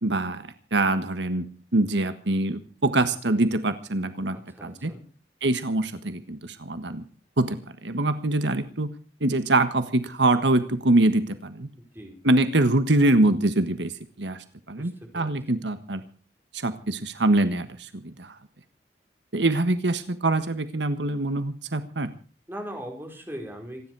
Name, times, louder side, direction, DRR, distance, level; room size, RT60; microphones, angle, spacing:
voice 1, 0.0-4.4 4.6-4.9 5.4-7.0 7.4-8.9 9.2-11.7 12.2-13.9 14.2-16.0 16.5-18.3 19.3-22.1, right 2 dB, 90° right, 10 dB, 1.5 m, -24 dB
voice 2, 4.3-5.0 11.9-12.1 14.8-15.6 22.5-23.9, equal, 15° right, 2 dB, 4.8 m, -40 dB
27.0 x 10.5 x 4.8 m, 0.37 s
head